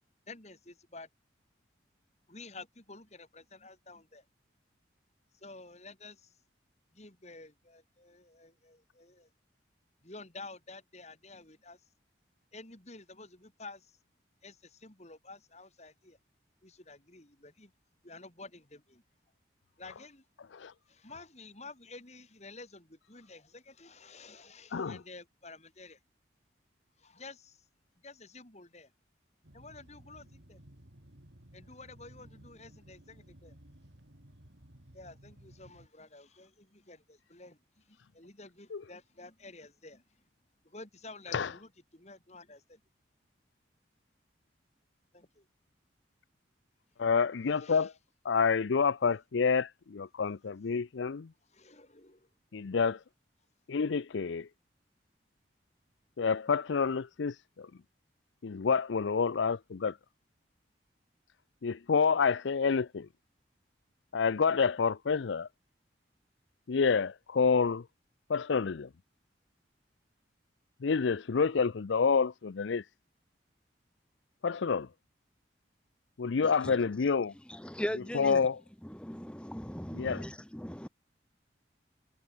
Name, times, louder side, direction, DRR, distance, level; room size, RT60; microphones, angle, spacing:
voice 1, 0.3-1.1 2.3-4.2 5.3-6.3 6.9-9.3 10.0-11.8 12.5-14.0 14.4-16.2 16.6-17.7 18.0-19.0 19.8-20.2 20.9-26.0 27.0-27.6 28.0-28.9 29.5-30.6 31.5-33.5 34.9-40.0 40.6-42.8 45.1-45.5 47.6-47.9 51.5-52.3, left 3 dB, 35° left, 3.3 m, -51 dB
sound 1, 29.4-35.9, right 1 dB, 70° right, 3.4 m, -56 dB
voice 2, 47.0-47.9 48.2-51.3 52.5-53.0 53.7-54.5 56.2-57.7 58.4-60.0 61.6-63.1 64.1-65.5 66.7-67.8 68.3-68.9 70.8-72.8 74.4-74.9 76.2-77.3 78.1-78.6 79.9-80.2, left 5 dB, 80° left, 0.5 m, -28 dB
voice 3, 76.4-76.8 77.5-78.5 78.8-80.9, equal, 5° left, 0.7 m, -39 dB
head